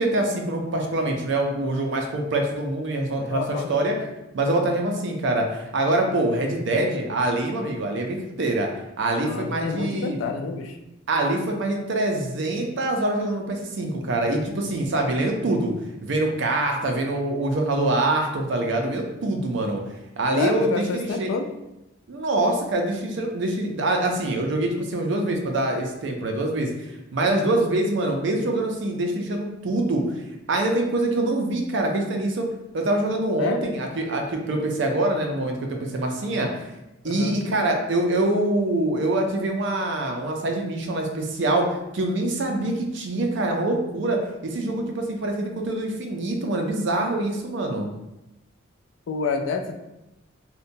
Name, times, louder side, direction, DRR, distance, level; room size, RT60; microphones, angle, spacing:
voice 1, 0.0-4.0 4.3-8.7 9.0-10.2 11.1-15.7 16.0-19.8 20.2-21.3 22.1-30.2 30.5-32.5 32.7-36.7 37.0-41.7 41.9-47.9, right 2 dB, 65° right, 2 dB, 0.4 m, -25 dB
voice 2, 3.3-3.7 9.2-10.8 20.3-21.5 33.4-33.6 37.0-37.4 49.1-49.7, left 4 dB, 75° left, 5 dB, 0.3 m, -28 dB
2.7 x 2.1 x 2.6 m, 0.92 s
head